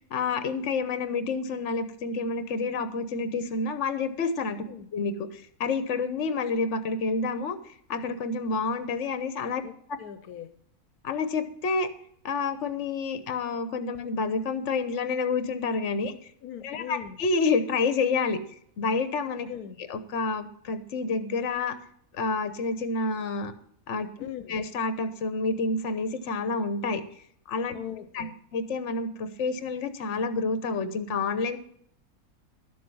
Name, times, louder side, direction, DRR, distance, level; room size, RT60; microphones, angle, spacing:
voice 1, 0.1-4.6 4.9-7.6 7.9-9.6 11.0-11.9 12.2-16.1 16.6-18.4 18.8-19.5 19.8-21.8 22.1-23.5 23.9-27.0 27.5-27.8 28.1-28.3 28.5-31.6, left 4 dB, 55° left, 11 dB, 1.3 m, -29 dB
voice 2, 10.0-10.5 16.4-17.2 19.5-19.8 24.2-24.6 27.7-28.3, left 10 dB, 80° left, 10 dB, 1.3 m, -40 dB
12.0 x 7.7 x 5.5 m, 0.65 s
omnidirectional pair, 1.6 m